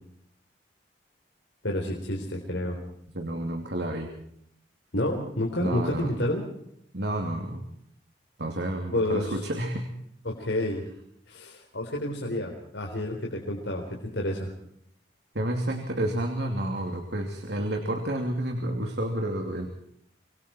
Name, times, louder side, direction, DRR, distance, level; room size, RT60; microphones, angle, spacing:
voice 1, 1.6-2.8 4.9-6.4 8.9-9.4 10.2-10.8 11.3-14.5, left 1 dB, 80° left, 0 dB, 3.9 m, -29 dB
voice 2, 3.1-4.1 5.6-6.1 6.9-7.6 8.4-9.9 15.3-19.7, right 1 dB, 65° right, 3 dB, 2.8 m, -30 dB
26.5 x 23.0 x 4.5 m, 0.71 s
head